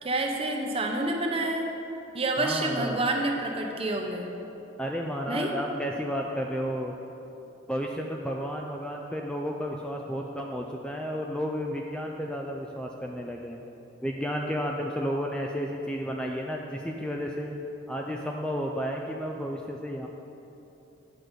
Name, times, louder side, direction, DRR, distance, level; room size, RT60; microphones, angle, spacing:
voice 1, 0.0-1.7 2.1-4.3 5.3-5.5, right 2 dB, 30° right, 2 dB, 0.8 m, -28 dB
voice 2, 2.4-3.0 4.8-6.9 7.7-13.6 14.0-17.5 17.9-20.1, equal, 5° left, 0 dB, 0.4 m, -32 dB
9.2 x 6.3 x 5.1 m, 3.0 s
head